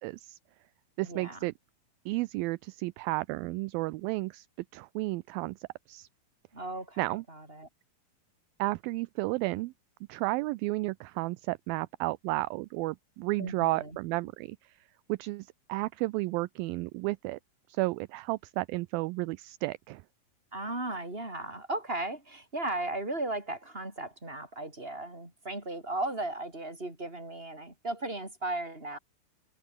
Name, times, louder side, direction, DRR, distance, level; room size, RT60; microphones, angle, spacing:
voice 1, 0.0-0.4 1.0-1.5 2.1-4.5 4.7-6.1 7.0-7.2 8.6-9.7 10.1-14.7 15.1-17.4 17.7-20.0, right 21 dB, 80° right, 2.2 m, -32 dB
voice 2, 1.0-1.4 6.5-7.7 13.4-14.0 20.5-29.0, right 2 dB, 15° right, 6.4 m, -36 dB
omnidirectional pair, 4.5 m